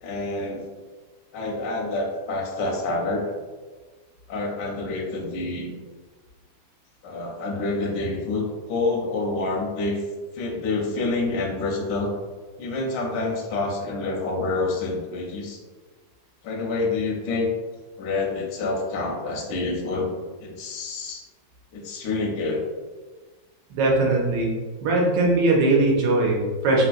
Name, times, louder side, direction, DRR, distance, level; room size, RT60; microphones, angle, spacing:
voice 1, 0.0-0.6 1.3-3.3 4.3-5.7 7.0-10.0 10.3-12.1 12.6-15.6 16.4-17.5 18.0-20.1 20.4-21.2 21.7-22.6, left 3 dB, 75° left, 0 dB, 1.1 m, -27 dB
voice 2, 23.7-24.5 24.8-26.9, right 2 dB, 70° right, -2 dB, 1.3 m, -20 dB
3.1 x 2.8 x 2.4 m, 1.4 s
omnidirectional pair, 2.1 m